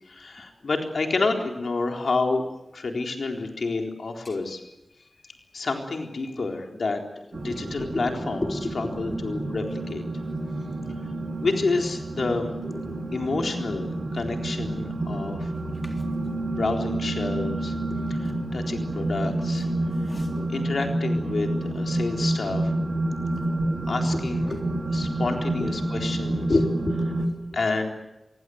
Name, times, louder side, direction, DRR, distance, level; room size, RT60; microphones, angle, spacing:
voice 1, 0.1-2.4 2.7-4.6 5.5-7.0 7.3-10.0 11.4-12.5 13.1-15.5 16.4-17.7 18.1-19.7 20.1-20.2 20.5-21.5 21.7-22.7 23.9-24.6 24.9-26.5 27.5-27.9, left 3 dB, 80° left, 3 dB, 4.0 m, -29 dB
sound 1, 7.3-27.3, right 1 dB, 70° right, 4.9 m, -29 dB
voice 2, 7.5-8.7 12.6-13.1 15.8-15.9 17.9-18.0 20.1-20.5 22.2-22.3 24.5-24.7 26.5-27.3, left 2 dB, 45° left, 3 dB, 3.6 m, -30 dB
27.0 x 23.0 x 7.9 m, 0.95 s
wide cardioid pair, 70°, 0 cm